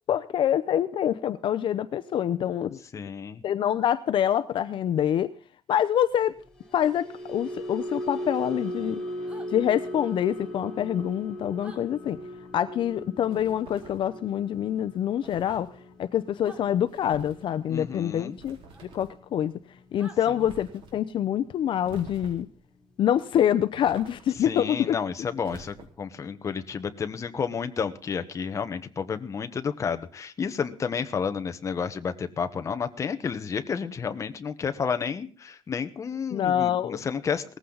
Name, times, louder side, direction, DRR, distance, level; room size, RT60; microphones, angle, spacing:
voice 1, 0.1-2.8 3.4-5.3 5.7-6.4 6.7-9.0 9.5-12.2 12.5-15.7 16.0-18.6 18.9-19.5 19.9-22.5 23.0-25.0 36.3-37.0, left 10 dB, 60° left, 12 dB, 0.7 m, -26 dB
voice 2, 2.9-3.4 17.7-18.4 24.4-37.4, left 6 dB, 30° left, 8 dB, 1.1 m, -31 dB
sound 1, 6.4-22.8 23.2-23.5 23.8-24.0, equal, 5° left, 4.0 m, -40 dB
sound 2, 9.3-9.5 11.6-11.8 13.8-14.0 15.3-15.6 16.4-16.6 18.7-18.8 20.0-20.2, right 2 dB, 15° right, 2.2 m, -47 dB
sound 3, 13.3-14.1 15.2-15.7 16.9-17.4 18.3-19.2 20.4-20.9 21.8-22.6 23.8-24.5 25.4-26.1, right 3 dB, 65° right, 4.2 m, -47 dB
19.0 x 14.5 x 4.0 m, 0.41 s
cardioid pair, 165°, 10 cm